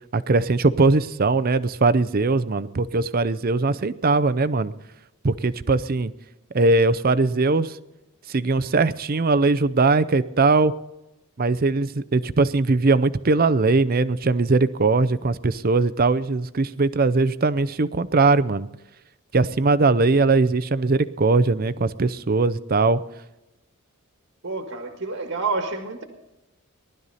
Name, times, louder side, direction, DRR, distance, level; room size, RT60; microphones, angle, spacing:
voice 1, 0.1-4.7 5.2-6.1 6.5-7.8 8.3-10.7 11.4-18.7 19.3-23.0, right 3 dB, 45° right, 16 dB, 0.6 m, -20 dB
voice 2, 24.4-26.0, right 3 dB, 65° right, 5 dB, 1.7 m, -28 dB
19.5 x 12.0 x 4.2 m, 0.96 s
head